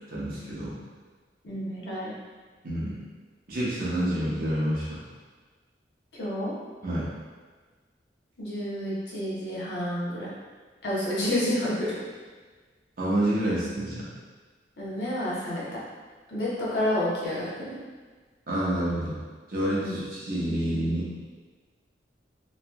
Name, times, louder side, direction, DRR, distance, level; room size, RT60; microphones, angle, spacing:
voice 1, 0.1-0.7 2.6-3.0 3.5-5.0 6.8-7.1 13.0-14.1 18.5-19.1 19.5-21.1, right 1 dB, 55° right, -8 dB, 0.9 m, -28 dB
voice 2, 1.4-2.1 6.1-6.5 8.4-10.3 10.8-12.0 14.8-15.6 16.3-17.8 19.8-19.9, left 1 dB, 75° left, -7 dB, 0.9 m, -29 dB
3.2 x 2.9 x 2.2 m, 1.4 s
head